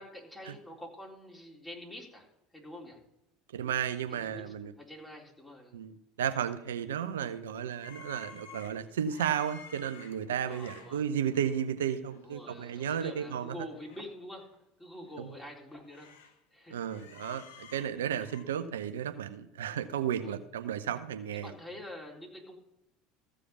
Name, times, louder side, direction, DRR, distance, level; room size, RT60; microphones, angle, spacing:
voice 1, 0.0-2.3 2.5-3.0 4.1-5.7 10.4-11.0 12.2-14.5 14.8-16.1 16.5-16.8 20.1-20.4 21.3-22.6, left 1 dB, 10° left, -1 dB, 3.8 m, -46 dB
voice 2, 3.5-4.7 5.7-13.6 15.2-15.3 16.7-21.5, right 9 dB, 80° right, 10 dB, 0.6 m, -33 dB
sound 1, 7.8-11.7 12.1-12.3 12.5-14.0 14.4-14.5 15.0-16.4 16.7-18.4, left 5 dB, 80° left, 1.3 m, -53 dB
14.5 x 5.0 x 7.0 m, 0.84 s
hypercardioid pair, 75°, 0 cm